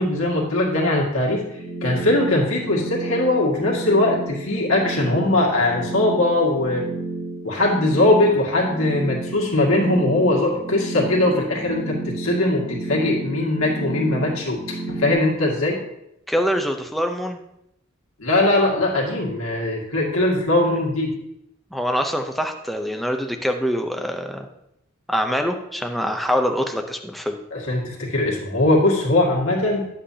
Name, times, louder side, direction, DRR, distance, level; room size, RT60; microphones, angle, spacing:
voice 1, 0.0-1.4 1.8-6.8 7.4-14.6 14.9-15.8 18.2-21.2 27.5-29.9, left 2 dB, 70° left, -2 dB, 2.0 m, -20 dB
sound 1, 1.5-15.1, right 2 dB, 25° left, 2.4 m, -31 dB
voice 2, 16.3-17.4 21.7-24.5 25.1-27.4, equal, ahead, 4 dB, 0.6 m, -24 dB
10.0 x 7.8 x 2.8 m, 0.80 s
head